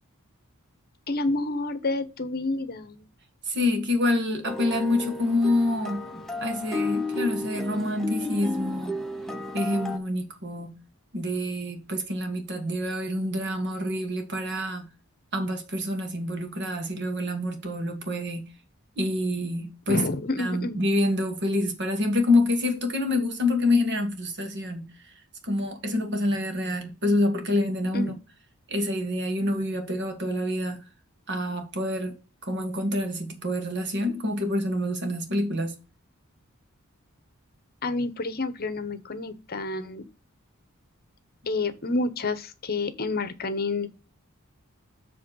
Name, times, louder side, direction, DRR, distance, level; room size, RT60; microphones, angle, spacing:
voice 1, 1.1-3.1 19.9-20.8 27.9-28.1 37.8-40.0 41.5-43.9, left 2 dB, 45° left, 0.9 m, -29 dB
voice 2, 3.5-6.0 6.4-9.0 9.5-10.8 11.1-14.9 15.3-18.5 19.0-20.1 20.4-25.1 25.4-28.1 28.7-30.8 31.3-32.2 32.4-35.8, left 1 dB, 55° right, 1.8 m, -27 dB
sound 1, 4.4-10.0, left 2 dB, ahead, 0.8 m, -32 dB
7.6 x 3.5 x 6.3 m
head